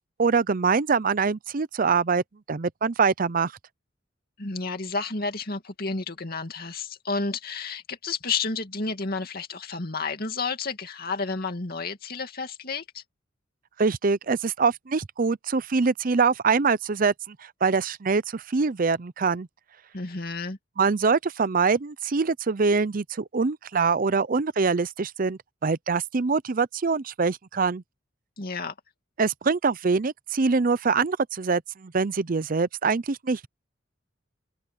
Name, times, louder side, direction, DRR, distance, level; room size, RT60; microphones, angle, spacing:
voice 1, 0.0-3.5 13.8-19.5 20.8-27.8 29.2-33.5, right 4 dB, 45° right, 0.6 m, -24 dB
voice 2, 4.4-13.0 19.9-20.6 28.4-28.7, left 4 dB, 50° left, 2.5 m, -31 dB
open air
head